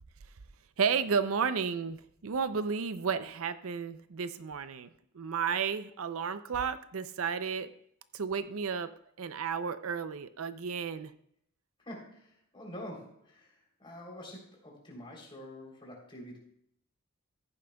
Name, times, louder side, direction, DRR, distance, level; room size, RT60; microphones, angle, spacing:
voice 1, 0.8-4.9 5.1-7.7 8.1-8.9 9.2-11.1, right 6 dB, 70° right, 12 dB, 0.5 m, -32 dB
voice 2, 11.8-12.2 12.5-13.4 13.8-16.4, left 1 dB, 25° left, -2 dB, 3.4 m, -46 dB
14.5 x 10.5 x 2.3 m, 0.70 s
head